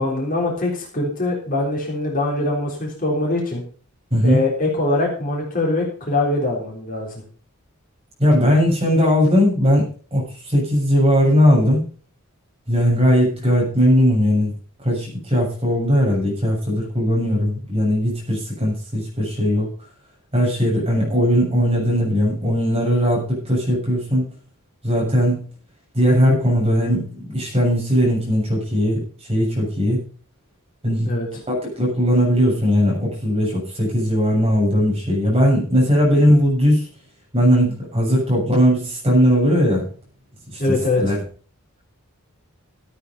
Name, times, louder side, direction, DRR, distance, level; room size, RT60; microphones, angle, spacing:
voice 1, 0.0-3.6 4.2-7.2 31.0-31.3 40.6-41.1, left 2 dB, 40° left, -1 dB, 3.7 m, -22 dB
voice 2, 4.1-4.4 8.2-11.8 12.7-14.5 14.8-19.7 20.3-24.3 24.8-25.4 25.9-30.0 30.8-31.1 31.5-36.9 37.3-39.9 40.5-41.2, equal, 25° right, -4 dB, 7.1 m, -18 dB
13.5 x 8.6 x 5.4 m, 0.41 s
head